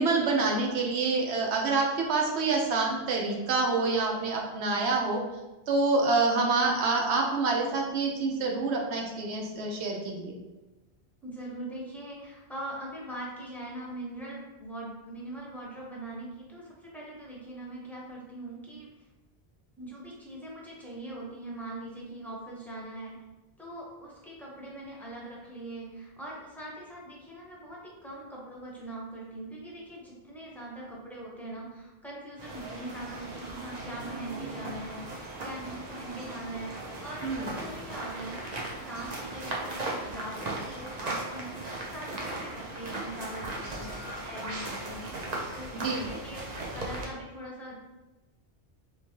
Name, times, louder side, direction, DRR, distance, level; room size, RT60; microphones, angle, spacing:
voice 1, 0.0-5.2 5.7-10.4 37.2-37.6 45.7-46.1, right 3 dB, 85° right, 0 dB, 1.0 m, -27 dB
voice 2, 11.2-18.9 19.8-23.2 23.6-45.1 45.5-47.7, right 1 dB, ahead, -5 dB, 0.7 m, -42 dB
sound 1, 32.4-47.0, right 2 dB, 45° right, 0.7 m, -37 dB
3.4 x 3.1 x 2.8 m, 1.1 s
omnidirectional pair, 1.1 m